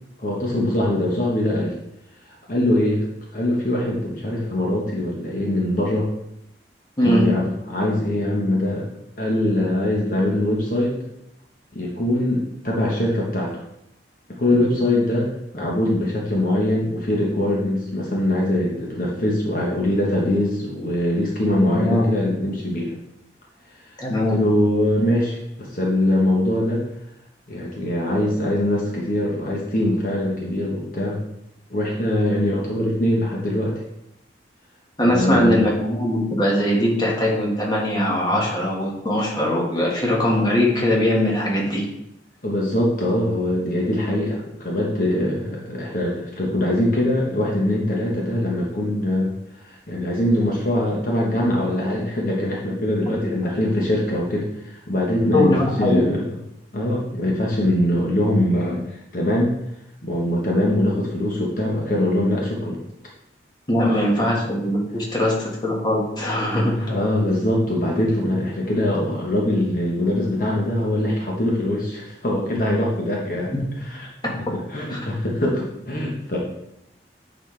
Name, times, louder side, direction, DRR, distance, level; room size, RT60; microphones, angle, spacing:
voice 1, 0.2-1.7 2.5-3.0 3.3-6.1 7.0-8.8 9.2-11.0 11.7-13.6 14.3-22.9 24.3-26.8 27.5-31.2 31.7-33.8 35.1-35.6 38.3-38.4 42.4-49.3 49.6-56.3 56.7-59.6 60.0-62.8 66.8-73.5 73.8-74.1 74.7-76.4, left 1 dB, 50° left, -3 dB, 1.1 m, -22 dB
voice 2, 7.0-7.3 21.7-22.0 24.0-24.4 35.0-41.8 53.2-53.3 55.3-56.0 63.7-66.9 73.5-73.6 74.2-74.3 74.9-75.1, left 1 dB, 25° left, -3 dB, 1.5 m, -21 dB
8.8 x 4.3 x 3.3 m, 0.82 s
head